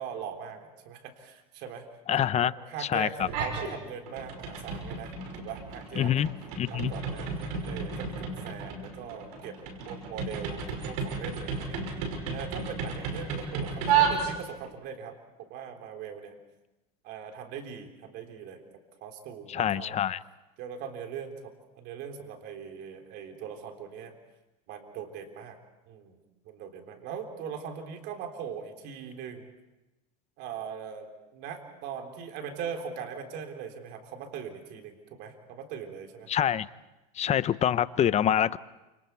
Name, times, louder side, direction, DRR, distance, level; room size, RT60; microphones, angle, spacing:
voice 1, 0.0-1.9 2.2-6.1 6.7-9.6 9.9-11.8 12.3-16.3 17.0-18.6 19.0-20.0 20.6-24.1 24.7-25.6 25.9-26.2 26.4-29.5 30.4-36.3, right 7 dB, 60° right, 4 dB, 3.7 m, -40 dB
voice 2, 2.1-2.5 2.8-3.3 6.0-6.3 6.6-6.9 19.5-20.2 36.3-36.7 37.2-38.6, left 10 dB, 35° left, 16 dB, 0.8 m, -25 dB
sound 1, 3.2-3.7 4.1-14.7, right 6 dB, 75° right, 5.6 m, -32 dB
29.5 x 27.0 x 4.7 m, 1.0 s
supercardioid pair, 100°, 20 cm